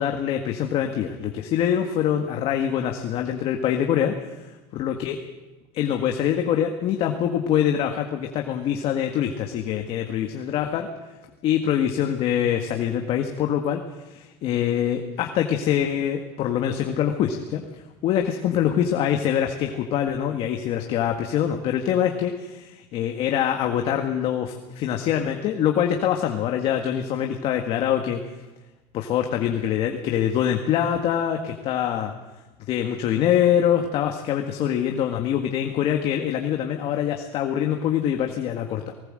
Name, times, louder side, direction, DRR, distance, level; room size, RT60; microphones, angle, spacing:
voice 1, 0.0-5.2 5.7-10.9 11.4-28.2 28.9-32.1 32.7-38.9, left 9 dB, 50° left, 4 dB, 1.8 m, -24 dB
19.5 x 19.0 x 7.8 m, 1.1 s
cardioid pair, 140°, 13 cm